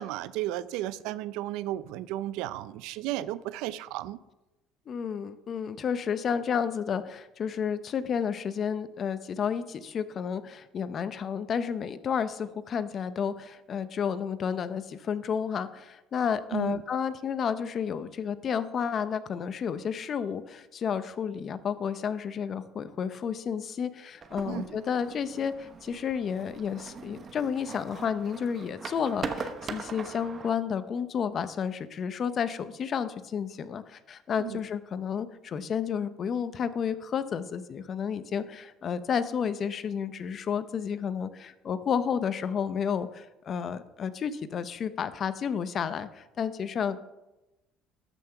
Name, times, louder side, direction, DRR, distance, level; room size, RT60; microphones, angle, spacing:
voice 1, 0.0-4.2 16.5-16.8 24.5-24.6 34.4-34.6, right 14 dB, 80° right, 0.5 m, -34 dB
voice 2, 4.9-47.0, left 7 dB, 45° left, 0.7 m, -31 dB
sound 1, 24.2-30.5, right 5 dB, 35° right, 1.0 m, -41 dB
13.0 x 5.8 x 5.8 m
supercardioid pair, 105°, 0 cm